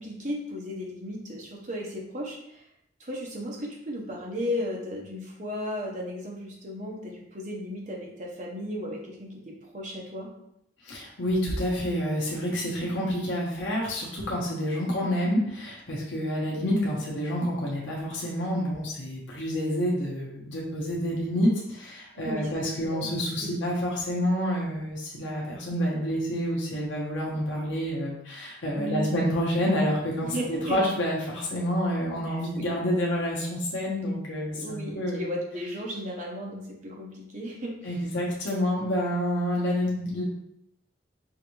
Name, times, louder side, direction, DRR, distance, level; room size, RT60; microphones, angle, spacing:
voice 1, 0.0-2.6 3.0-10.3 22.2-22.5 22.8-23.1 23.4-23.5 28.7-29.1 30.2-30.9 32.3-32.7 34.5-37.7, equal, 40° right, -2 dB, 0.9 m, -35 dB
voice 2, 10.8-35.2 37.8-40.2, equal, 80° left, -4 dB, 1.0 m, -28 dB
5.6 x 2.6 x 3.0 m, 0.77 s
head